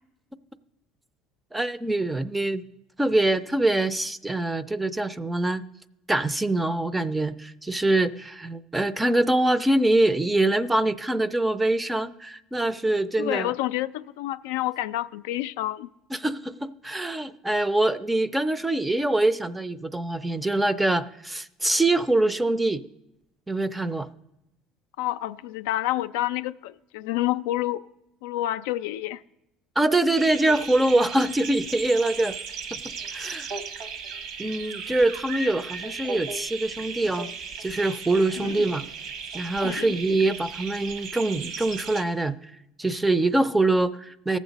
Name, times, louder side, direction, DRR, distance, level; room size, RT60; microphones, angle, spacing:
voice 1, 1.5-2.6 3.0-5.6 6.1-13.5 16.1-22.8 23.5-24.1 29.8-32.4 32.7-33.5 34.4-37.3 37.6-38.9 39.3-42.4 42.8-44.4, right 2 dB, 10° right, 14 dB, 0.4 m, -24 dB
voice 2, 13.2-15.9 25.0-27.8 28.2-29.2 38.4-38.7 39.6-40.0, left 15 dB, 90° left, 11 dB, 0.3 m, -29 dB
sound 1, 30.1-42.0, right 5 dB, 65° right, 1.1 m, -36 dB
17.5 x 7.3 x 4.0 m, 0.87 s
supercardioid pair, 115°, 0 cm